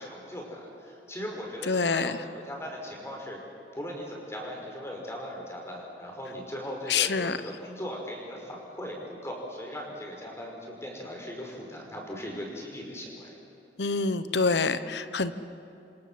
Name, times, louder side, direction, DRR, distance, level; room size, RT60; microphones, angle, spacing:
voice 1, 0.0-3.4 3.7-13.4, equal, 15° left, 0 dB, 5.4 m, -39 dB
voice 2, 1.7-2.2 6.9-7.4 13.8-15.3, left 4 dB, 75° left, 12 dB, 1.1 m, -26 dB
28.0 x 25.0 x 7.7 m, 2.8 s
head